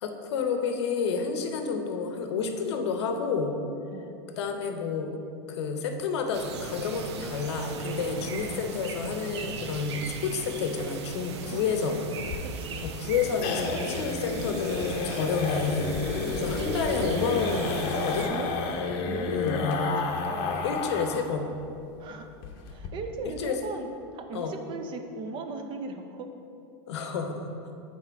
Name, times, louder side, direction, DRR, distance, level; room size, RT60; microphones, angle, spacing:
voice 1, 0.0-3.5 4.4-5.1 5.5-12.0 12.8-15.9 16.3-18.2 19.3-19.9 20.5-21.5 23.2-23.5 24.3-24.5 26.9-27.5, left 5 dB, 80° left, 5 dB, 0.8 m, -30 dB
sound 1, 6.3-18.3, right 5 dB, 85° right, 0.6 m, -38 dB
voice 2, 8.2-8.8 12.1-12.9 16.2-16.8 17.9-18.6 19.1-20.6 22.0-22.4 22.7-26.3, right 4 dB, 35° right, 6 dB, 0.5 m, -39 dB
sound 2, 12.2-21.3 21.6-21.7 22.0-22.1 22.4-22.9, left 4 dB, 50° left, 0.7 m, -31 dB
6.1 x 4.3 x 4.6 m, 2.6 s
supercardioid pair, 135°, 14 cm